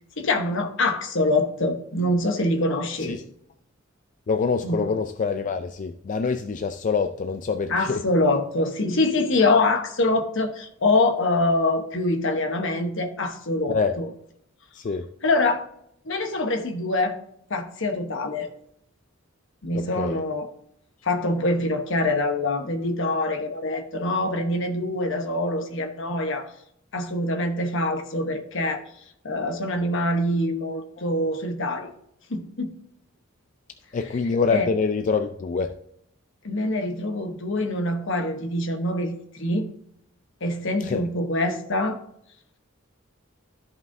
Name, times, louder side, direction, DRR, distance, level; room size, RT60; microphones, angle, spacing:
voice 1, 0.2-3.2 4.6-5.0 7.7-14.1 15.2-15.6 16.0-17.2 17.5-18.5 19.6-20.5 21.0-26.5 26.9-28.8 29.2-31.9 32.3-32.7 34.5-34.7 36.4-39.7 40.4-42.0, left 2 dB, 65° left, 6 dB, 1.1 m, -24 dB
voice 2, 4.3-8.0 13.7-14.0 14.7-15.1 19.7-20.2 33.9-35.7 40.8-41.0, left 5 dB, 40° left, 6 dB, 0.4 m, -25 dB
13.0 x 5.5 x 2.7 m, 0.72 s
head